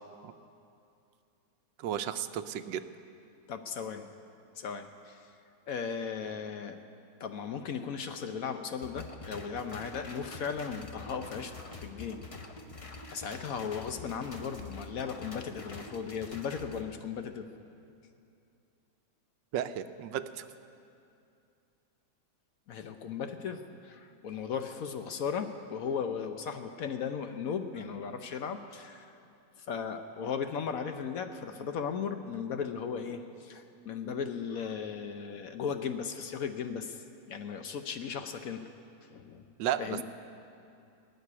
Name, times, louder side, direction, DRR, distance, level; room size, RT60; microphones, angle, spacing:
voice 1, 1.8-2.9 19.5-20.5 39.6-40.0, right 10 dB, 85° right, 11 dB, 1.3 m, -33 dB
voice 2, 3.5-4.1 4.6-5.3 5.7-6.8 7.2-12.2 13.1-17.5 22.7-29.1 29.6-38.7 39.1-39.5 39.8-40.0, left 6 dB, 65° left, 7 dB, 1.0 m, -36 dB
sound 1, 8.8-16.8, left 3 dB, 30° left, 0.6 m, -46 dB
19.5 x 6.8 x 9.8 m, 2.6 s
omnidirectional pair, 1.9 m